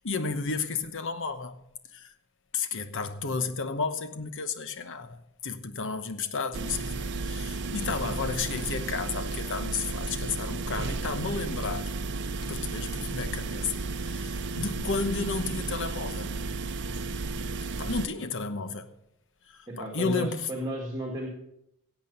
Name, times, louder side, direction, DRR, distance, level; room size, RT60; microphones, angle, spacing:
voice 1, 0.0-1.6 1.9-2.1 2.5-11.9 12.5-13.7 14.0-16.3 17.8-18.9 19.5-20.5, left 4 dB, 60° left, 1.0 m, -32 dB
sound 1, 6.5-18.1, right 3 dB, 55° right, 0.7 m, -33 dB
sound 2, 7.0-7.2 7.8-8.1 8.5-8.9 9.3-9.7 10.0-10.4 10.8-11.1 11.6-11.9 12.4-12.7 13.2-13.5 13.9-14.0 14.5-16.0, left 1 dB, 85° left, 1.5 m, -50 dB
voice 2, 19.7-21.3, right 1 dB, 20° right, 2.0 m, -34 dB
16.5 x 8.4 x 5.4 m
head